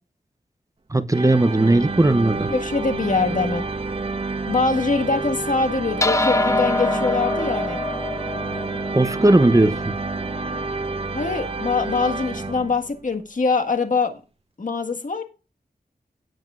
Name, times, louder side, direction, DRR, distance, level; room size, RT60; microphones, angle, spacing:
voice 1, 0.9-2.5 8.9-9.9, right 2 dB, 20° right, 0.7 m, -17 dB
sound 1, 1.1-13.1, right 3 dB, 35° right, 1.1 m, -29 dB
voice 2, 2.5-3.6 4.5-7.8 11.1-14.2 14.6-15.2, left 4 dB, 55° left, 1.6 m, -23 dB
sound 2, 6.0-10.7, left 2 dB, 20° left, 0.7 m, -25 dB
16.5 x 7.9 x 2.5 m
wide cardioid pair, 80°, 16 cm